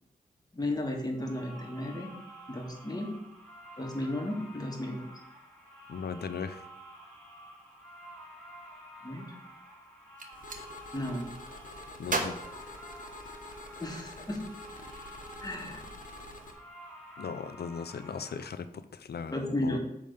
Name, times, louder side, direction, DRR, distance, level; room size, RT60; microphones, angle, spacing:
voice 1, 0.5-2.1 2.5-3.1 3.8-5.1 9.0-9.3 10.9-11.3 13.8-14.4 15.4-15.8 19.3-19.8, left 1 dB, 25° left, 1 dB, 1.7 m, -34 dB
sound 1, 1.1-18.5, equal, 5° left, 2.9 m, -50 dB
voice 2, 5.9-6.7 12.0-12.4 17.2-19.8, left 6 dB, 90° left, 11 dB, 0.6 m, -38 dB
Gunshot gunfire, 10.0-10.6 12.0-13.5, right 2 dB, 55° right, 1.2 m, -35 dB
sound 2, 10.3-16.5, left 2 dB, 55° left, 1.4 m, -47 dB
9.0 x 3.6 x 6.6 m, 0.87 s
wide cardioid pair, 80°, 16 cm